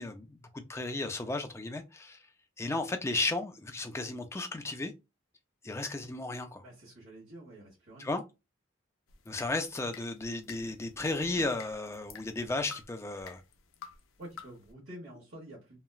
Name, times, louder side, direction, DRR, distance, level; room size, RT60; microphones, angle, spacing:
voice 1, 0.0-2.2 2.6-4.9 5.6-6.6 8.0-8.2 9.3-13.4, left 2 dB, 15° left, 0.3 m, -34 dB
voice 2, 6.6-8.1 14.2-15.8, right 1 dB, 80° right, 1.2 m, -48 dB
sound 1, 9.1-14.7, left 6 dB, 85° left, 0.5 m, -51 dB
2.9 x 2.2 x 2.3 m
head